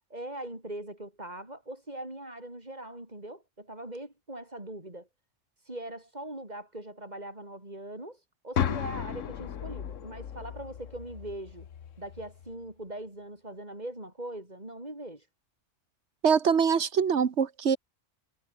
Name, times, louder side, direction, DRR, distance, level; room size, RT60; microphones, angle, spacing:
voice 1, 0.1-5.1 5.6-11.7 12.0-15.2, right 1 dB, 35° right, 5.1 m, -41 dB
sound 1, 8.5-12.5, left 9 dB, 85° left, 1.4 m, -35 dB
voice 2, 16.2-17.8, right 6 dB, 65° right, 1.5 m, -24 dB
omnidirectional pair, 1.3 m